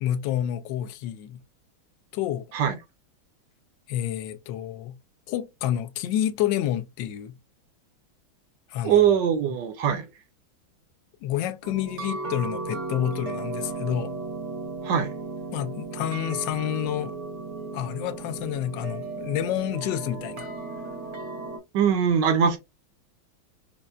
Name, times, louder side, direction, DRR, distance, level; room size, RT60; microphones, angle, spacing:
voice 1, 0.0-1.4 2.1-2.5 3.9-5.0 5.3-7.4 8.7-9.2 11.2-14.2 15.5-17.2 17.7-20.5, left 11 dB, 75° left, 1.1 m, -29 dB
voice 2, 8.8-10.1 14.8-15.1 21.7-22.6, right 8 dB, 70° right, 1.1 m, -21 dB
sound 1, 11.6-21.6, right 3 dB, 50° right, 0.9 m, -35 dB
5.3 x 2.1 x 2.4 m
omnidirectional pair, 2.2 m